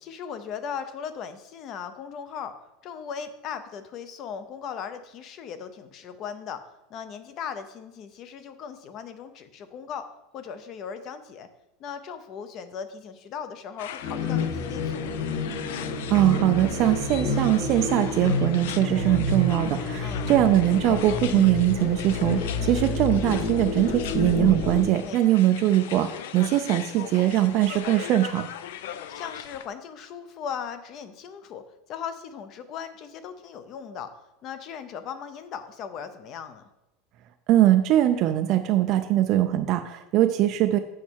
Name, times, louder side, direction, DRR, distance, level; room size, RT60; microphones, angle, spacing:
voice 1, 0.0-2.5 2.8-6.6 6.9-11.5 11.8-15.1 20.0-20.3 22.6-23.0 25.0-25.1 29.1-31.6 31.9-34.1 34.4-36.7, left 7 dB, 35° left, 11 dB, 0.6 m, -38 dB
sound 1, 13.8-29.7, left 10 dB, 85° left, 0.4 m, -40 dB
sound 2, 14.0-24.8, left 3 dB, 55° left, 1.8 m, -29 dB
voice 2, 16.1-28.5 37.5-40.8, right 13 dB, 40° right, 8 dB, 0.4 m, -22 dB
7.3 x 5.3 x 4.6 m, 0.97 s
supercardioid pair, 165°, 0 cm